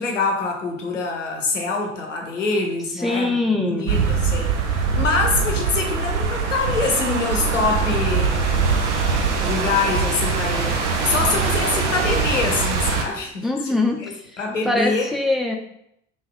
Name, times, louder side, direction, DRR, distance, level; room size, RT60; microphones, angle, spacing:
voice 1, 0.0-8.9 9.4-13.7 14.0-14.1 14.4-15.1, left 4 dB, 85° left, 2 dB, 0.7 m, -25 dB
voice 2, 3.0-4.0 13.4-15.6, left 2 dB, ahead, 1 dB, 0.8 m, -23 dB
sound 1, 3.9-13.0, right 5 dB, 75° right, 0.7 m, -22 dB
3.9 x 3.5 x 3.6 m, 0.74 s
figure-of-eight pair, 50°, 36 cm